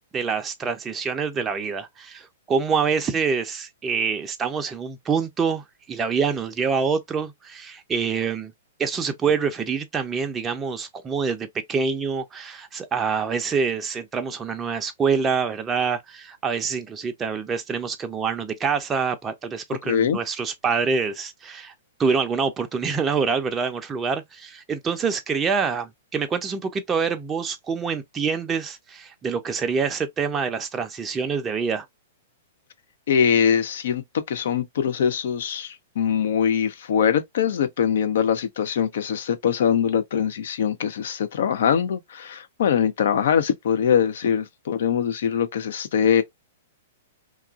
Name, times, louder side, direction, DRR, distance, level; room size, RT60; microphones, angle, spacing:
voice 1, 0.1-8.5 8.8-21.7 22.0-31.9, right 5 dB, 20° right, 0.5 m, -26 dB
voice 2, 19.8-20.2 33.1-46.2, left 8 dB, 60° left, 0.6 m, -22 dB
2.9 x 2.4 x 2.3 m
figure-of-eight pair, 110°, 0 cm